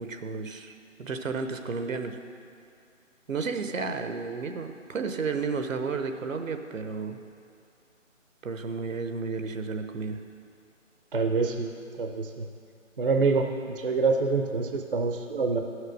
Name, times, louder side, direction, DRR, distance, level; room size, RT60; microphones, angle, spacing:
voice 1, 0.0-2.2 3.3-7.2 8.4-10.2, right 4 dB, 80° right, 7 dB, 1.0 m, -32 dB
voice 2, 11.1-12.5 13.0-15.6, right 4 dB, 45° right, 4 dB, 0.5 m, -26 dB
10.0 x 6.6 x 6.3 m, 2.3 s
figure-of-eight pair, 165°, 40 cm